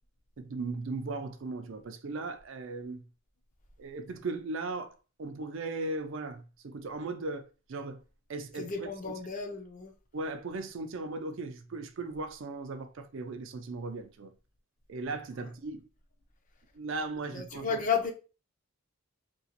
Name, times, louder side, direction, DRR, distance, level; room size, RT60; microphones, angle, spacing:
voice 1, 0.4-3.0 3.8-8.0 8.3-9.1 10.1-14.3 14.9-15.9 16.7-17.8, right 3 dB, 60° right, 0.4 m, -37 dB
voice 2, 8.6-9.9 17.3-18.1, left 6 dB, 35° left, 0.5 m, -32 dB
3.0 x 2.8 x 2.8 m
head